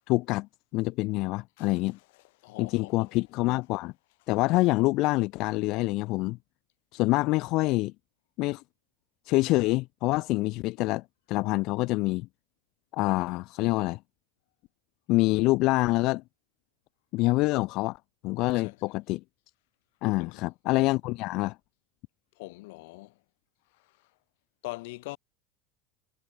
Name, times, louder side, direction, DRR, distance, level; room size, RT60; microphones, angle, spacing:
voice 1, 0.1-2.0 2.6-3.9 4.3-6.4 6.9-7.9 8.4-8.6 9.2-12.3 12.9-14.0 15.1-16.2 17.1-18.0 18.2-19.2 20.0-21.5, left 21 dB, 50° left, 1.1 m, -26 dB
voice 2, 2.4-3.1 18.6-18.7 20.0-20.4 22.4-23.1 24.6-25.2, left 23 dB, 75° left, 6.2 m, -42 dB
supercardioid pair, 155°, 0 cm